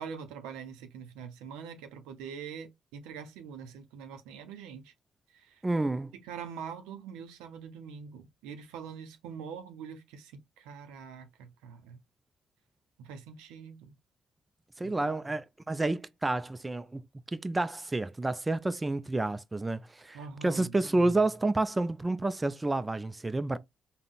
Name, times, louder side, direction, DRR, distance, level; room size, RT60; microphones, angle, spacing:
voice 1, 0.0-4.9 5.3-5.6 6.2-12.0 13.0-13.9 14.8-15.2 20.1-20.8, right 6 dB, 90° right, 0.5 m, -44 dB
voice 2, 5.6-6.1 14.8-17.0 17.3-23.6, right 2 dB, 20° right, 0.3 m, -29 dB
3.6 x 2.1 x 2.3 m
supercardioid pair, 60°, 0 cm